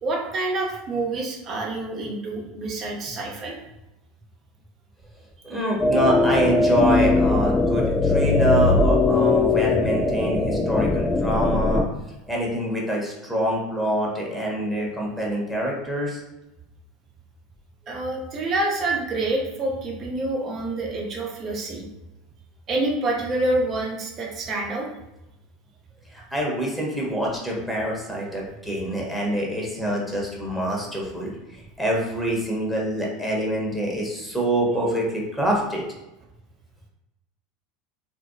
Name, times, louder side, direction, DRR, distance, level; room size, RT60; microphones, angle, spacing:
voice 1, 0.0-3.5 5.5-5.7 17.8-21.9 22.7-24.9, right 2 dB, 40° right, -1 dB, 0.9 m, -27 dB
voice 2, 5.4-11.8 12.3-16.2 26.1-35.8, right 1 dB, ahead, -3 dB, 1.0 m, -26 dB
sound 1, 5.8-11.8, left 3 dB, 15° left, 0.4 m, -20 dB
2.9 x 2.6 x 2.6 m, 0.94 s
hypercardioid pair, 85°, 0 cm